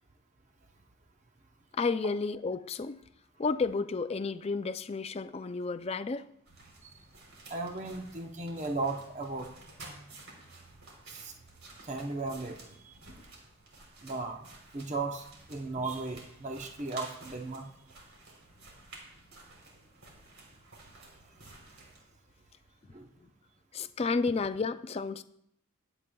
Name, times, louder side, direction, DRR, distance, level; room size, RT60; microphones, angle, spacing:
voice 1, 1.7-3.0 3.4-6.3 23.7-25.2, left 4 dB, 30° left, 0.3 m, -31 dB
sound 1, 6.5-22.0, right 2 dB, 70° right, 3.5 m, -52 dB
voice 2, 7.5-9.5 11.1-11.3 11.8-12.9 14.0-14.4 14.7-17.7 22.9-23.1, right 3 dB, 35° right, 0.8 m, -36 dB
22.0 x 8.9 x 2.3 m
head